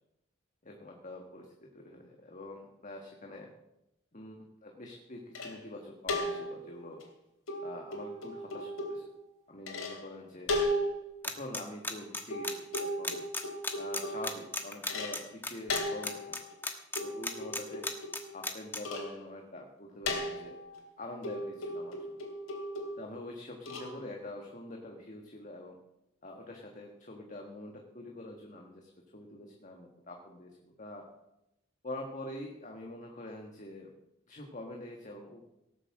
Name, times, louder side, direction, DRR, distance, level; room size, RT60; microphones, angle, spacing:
voice 1, 0.6-3.5 4.1-7.0 7.6-9.0 9.5-10.5 11.2-13.2 13.8-16.4 17.0-17.8 18.3-20.6 21.0-22.1 23.0-25.8 26.2-31.1 31.8-33.9 34.3-35.4, left 1 dB, 35° left, 2 dB, 1.6 m, -45 dB
sound 1, 5.4-5.6 6.1-6.7 7.0-7.1 7.5-9.1 9.7-10.0 10.5-11.1 12.3-15.3 15.7-16.6 17.0-18.4 18.9-19.1 20.1-20.8 21.2-23.1 23.7-23.9, left 1 dB, 90° left, 3.0 m, -36 dB
sound 2, 11.2-18.8, left 2 dB, 10° left, 1.3 m, -34 dB
17.5 x 7.5 x 7.5 m, 0.86 s
head